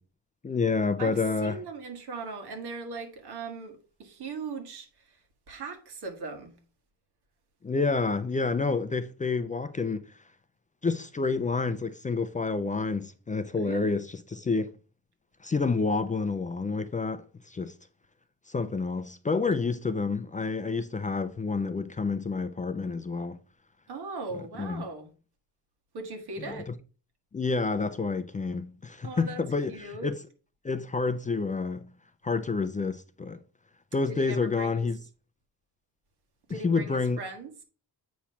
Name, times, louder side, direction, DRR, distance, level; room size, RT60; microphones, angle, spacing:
voice 1, 0.4-1.6 7.6-10.0 10.8-14.7 15.4-17.7 18.5-23.4 24.6-24.8 26.4-26.6 27.3-30.2 30.6-31.9 32.2-33.4 33.9-35.0 36.6-37.2, left 4 dB, 20° left, 0.3 m, -29 dB
voice 2, 1.0-5.2 5.5-6.6 13.5-13.9 23.9-25.1 25.9-26.7 29.0-30.1 34.1-34.9 36.5-37.5, right 3 dB, 90° right, 1.8 m, -39 dB
8.4 x 3.1 x 5.6 m
wide cardioid pair, 160°, 38 cm